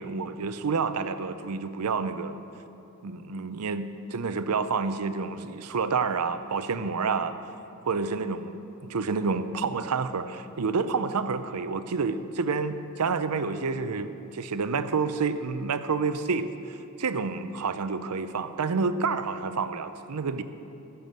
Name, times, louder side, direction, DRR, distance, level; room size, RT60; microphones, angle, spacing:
voice 1, 0.0-2.4 3.0-7.3 7.8-8.5 8.8-20.4, right 4 dB, 85° right, 11 dB, 0.6 m, -29 dB
13.5 x 7.0 x 7.7 m, 2.9 s
head